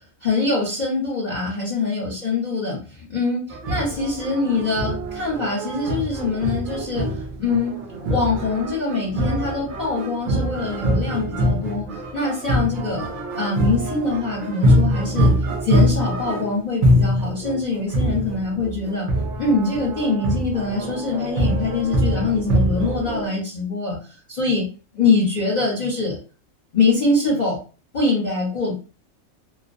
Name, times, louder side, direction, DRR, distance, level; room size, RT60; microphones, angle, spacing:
voice 1, 0.2-7.7 8.1-13.1 13.4-15.3 15.6-19.1 19.4-24.0 24.3-24.6 24.9-26.2 26.7-27.6 27.9-28.7, left 3 dB, 40° left, -5 dB, 0.7 m, -23 dB
sound 1, 3.5-23.3, equal, 60° right, 0.5 m, -23 dB
2.3 x 2.1 x 2.5 m, 0.36 s
omnidirectional pair, 1.4 m